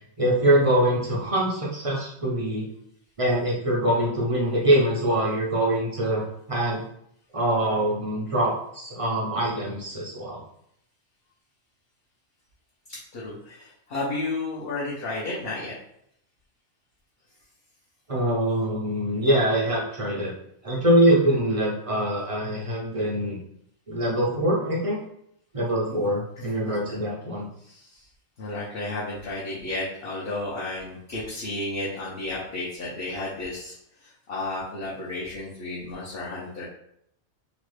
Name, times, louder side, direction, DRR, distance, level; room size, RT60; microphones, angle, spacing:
voice 1, 0.2-2.7 3.2-6.8 7.3-10.4 18.1-20.3 20.6-23.4 23.9-25.0 25.5-27.5, right 1 dB, 45° right, -4 dB, 0.4 m, -24 dB
voice 2, 12.9-15.8 25.8-26.1 26.4-27.0 27.6-28.0 28.4-33.7 34.0-36.6, left 2 dB, 55° left, -7 dB, 0.8 m, -33 dB
2.9 x 2.3 x 3.2 m, 0.73 s
omnidirectional pair, 1.4 m